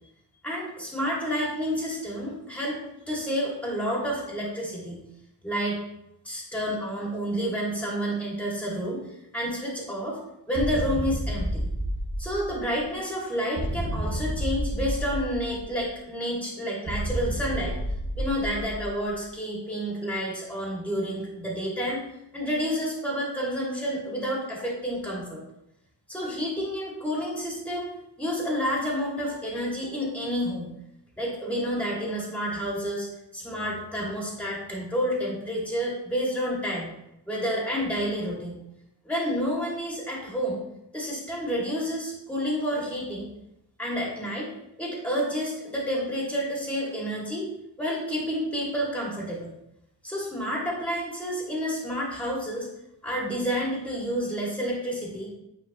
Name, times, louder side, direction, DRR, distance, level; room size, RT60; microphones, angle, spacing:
voice 1, 0.4-5.0 5.4-5.8 6.2-10.2 10.5-11.6 12.2-17.8 18.2-22.0 22.3-25.4 26.1-27.9 28.2-30.7 31.2-33.1 33.3-36.9 37.3-38.6 39.0-40.6 40.9-43.3 43.8-44.5 44.8-47.5 47.8-49.5 50.0-52.7 53.0-55.3, equal, 5° left, -4 dB, 2.4 m, -29 dB
sound 1, 10.5-12.8 13.6-15.9 16.9-19.1, equal, 20° right, 1.5 m, -30 dB
9.2 x 4.5 x 3.0 m, 0.84 s
wide cardioid pair, 85°, 45 cm